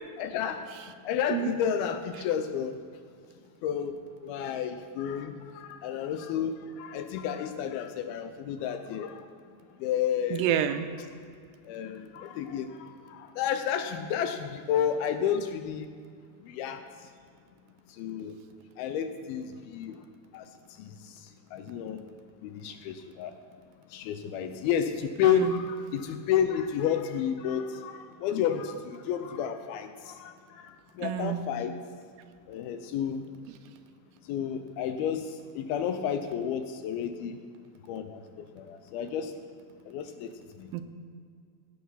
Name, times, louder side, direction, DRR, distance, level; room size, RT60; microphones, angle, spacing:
voice 1, 0.2-0.6 1.0-2.8 3.6-3.9 4.2-9.3 9.8-10.5 11.7-15.9 16.4-16.8 18.0-18.3 18.8-19.9 20.3-20.5 20.8-21.2 21.5-22.0 22.4-23.4 23.9-31.7 32.5-33.2 34.3-37.4 37.9-39.3 39.9-40.3 40.6-40.7, left 8 dB, 80° left, 8 dB, 2.3 m, -31 dB
voice 2, 10.3-10.9 25.3-25.4 31.0-31.4 40.7-40.8, right 10 dB, 90° right, 10 dB, 2.7 m, -28 dB
16.5 x 9.3 x 5.6 m, 2.2 s
omnidirectional pair, 4.8 m